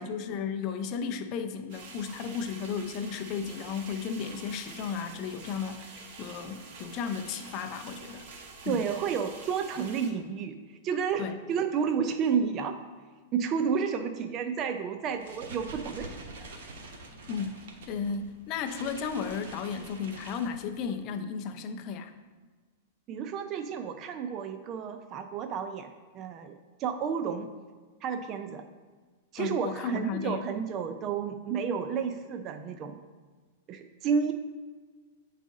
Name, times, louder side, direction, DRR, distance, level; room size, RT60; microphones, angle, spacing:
voice 1, 0.0-8.3 8.6-8.8 11.2-11.3 17.3-22.1 29.4-30.5, left 6 dB, 35° left, 7 dB, 0.5 m, -34 dB
sound 1, 1.7-10.1, right 4 dB, 45° right, 1.0 m, -47 dB
voice 2, 8.7-12.8 13.3-16.5 23.1-27.5 28.0-28.6 29.3-33.0 33.7-34.3, right 6 dB, 30° right, 7 dB, 0.4 m, -31 dB
sound 2, 15.1-21.0, right 2 dB, 65° right, 1.2 m, -46 dB
8.6 x 4.1 x 3.6 m, 1.4 s
supercardioid pair, 155°, 0 cm